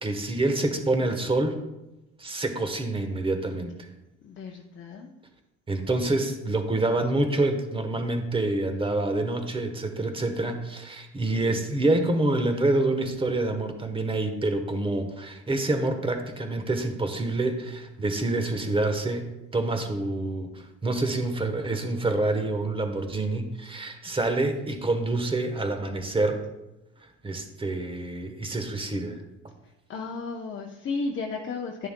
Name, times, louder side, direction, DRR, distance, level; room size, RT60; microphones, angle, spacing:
voice 1, 0.0-1.6 2.2-3.9 5.7-26.4 27.2-29.2, right 2 dB, 15° right, 7 dB, 1.0 m, -27 dB
voice 2, 4.2-5.1 29.9-31.9, left 4 dB, 40° left, 1 dB, 0.8 m, -33 dB
11.0 x 6.7 x 2.2 m, 0.97 s
supercardioid pair, 95°, 32 cm